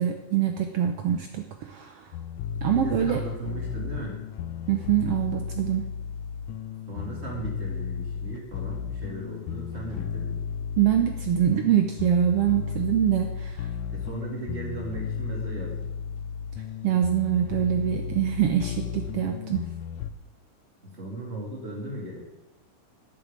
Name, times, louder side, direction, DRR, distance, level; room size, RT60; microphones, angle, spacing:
voice 1, 0.0-2.1 2.6-3.2 4.7-5.9 10.8-13.7 16.8-19.6, right 10 dB, 90° right, 5 dB, 1.3 m, -24 dB
sound 1, 2.1-20.1, left 7 dB, 90° left, 1.5 m, -34 dB
voice 2, 2.7-4.2 6.9-10.4 13.9-15.9 20.8-22.2, right 2 dB, 20° right, -1 dB, 2.4 m, -36 dB
9.0 x 7.0 x 8.7 m, 0.94 s
omnidirectional pair, 3.7 m